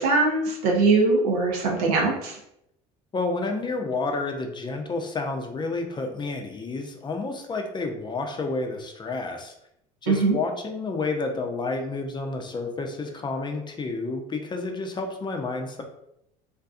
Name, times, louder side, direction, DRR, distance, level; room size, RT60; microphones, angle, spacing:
voice 1, 0.0-2.3 10.1-10.4, right 3 dB, 85° right, 0 dB, 0.7 m, -21 dB
voice 2, 3.1-9.6 10.0-15.8, left 3 dB, 25° left, 4 dB, 0.5 m, -30 dB
2.5 x 2.3 x 2.4 m, 0.78 s
hypercardioid pair, 75°, 19 cm